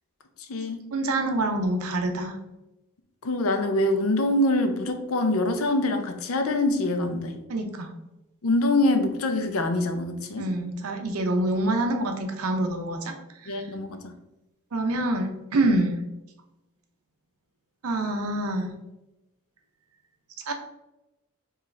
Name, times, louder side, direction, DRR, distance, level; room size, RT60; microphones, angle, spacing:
voice 1, 0.4-0.9 3.2-7.4 8.4-10.5 13.5-14.2, left 2 dB, 70° left, 7 dB, 0.6 m, -25 dB
voice 2, 0.9-2.4 7.5-7.9 10.4-13.1 13.4-13.7 14.7-16.0 17.8-18.7 20.5-20.6, right 1 dB, 85° right, 5 dB, 0.6 m, -26 dB
4.7 x 2.4 x 3.2 m, 0.96 s
head